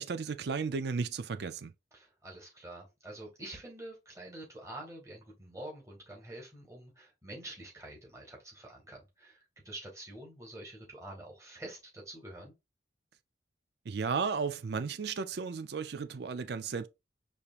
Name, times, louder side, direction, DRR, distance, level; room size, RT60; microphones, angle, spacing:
voice 1, 0.0-1.7 13.9-16.9, right 5 dB, 60° right, 0.4 m, -34 dB
voice 2, 1.9-12.5, right 1 dB, 15° right, 1.6 m, -47 dB
5.1 x 3.0 x 2.4 m
head